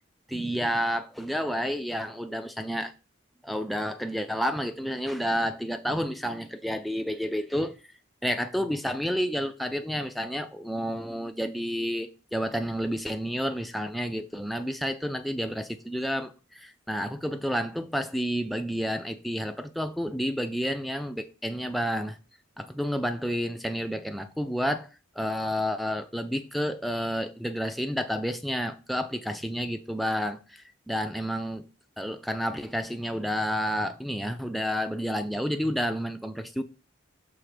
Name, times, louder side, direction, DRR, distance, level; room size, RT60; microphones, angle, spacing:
voice 1, 0.3-2.9 3.4-7.7 8.2-22.2 22.6-24.9 25.2-31.6 32.0-36.6, equal, ahead, 0.4 m, -30 dB
6.3 x 3.4 x 4.9 m
head